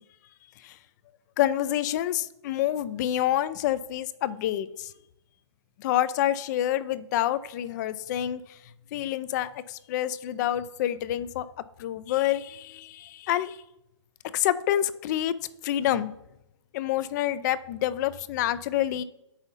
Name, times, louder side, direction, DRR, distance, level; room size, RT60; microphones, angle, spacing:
voice 1, 1.4-4.9 5.8-8.4 8.9-11.5 11.8-13.6 14.3-15.3 15.6-16.1 16.7-19.0, left 12 dB, 35° left, 15 dB, 0.4 m, -27 dB
7.8 x 5.6 x 4.1 m, 0.82 s
hypercardioid pair, 135°, 16 cm